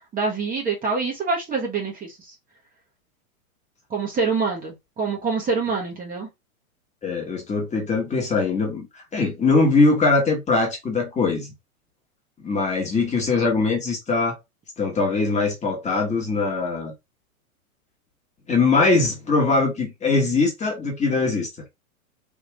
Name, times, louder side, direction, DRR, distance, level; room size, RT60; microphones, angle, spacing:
voice 1, 0.1-2.3 3.9-6.3, right 4 dB, 20° right, 1.3 m, -26 dB
voice 2, 7.0-11.5 12.4-14.4 14.8-16.9 18.5-21.5, left 3 dB, 15° left, 1.4 m, -21 dB
3.6 x 3.0 x 3.1 m
hypercardioid pair, 120°, 43 cm